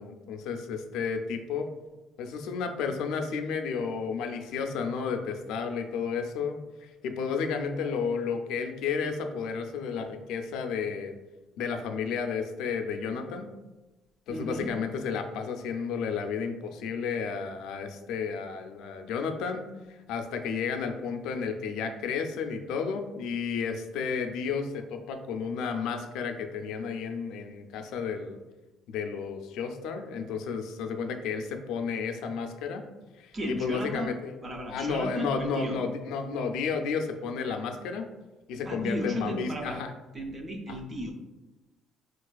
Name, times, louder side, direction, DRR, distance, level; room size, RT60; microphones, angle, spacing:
voice 1, 0.0-1.7 2.2-11.1 11.6-13.5 14.3-28.4 28.9-32.8 33.2-34.3 34.7-38.1 38.5-39.9 40.7-40.8, left 5 dB, 75° left, 5 dB, 0.3 m, -32 dB
voice 2, 14.3-14.7 33.3-34.1 34.4-35.8 38.7-39.8 40.1-41.1, equal, 20° right, 3 dB, 0.4 m, -35 dB
4.5 x 2.4 x 2.3 m, 1.1 s
cardioid pair, 175°, 0 cm